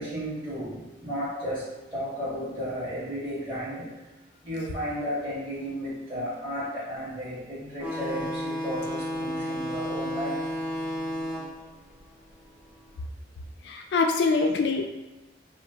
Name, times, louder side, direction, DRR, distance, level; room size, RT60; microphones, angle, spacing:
voice 1, 0.0-3.9 4.4-10.4, equal, 30° right, -11 dB, 1.5 m, -33 dB
sound 1, 7.8-12.9, equal, 10° right, 0.5 m, -33 dB
voice 2, 13.7-14.9, left 4 dB, 75° left, 3 dB, 0.3 m, -24 dB
3.0 x 2.0 x 2.7 m, 1.1 s
head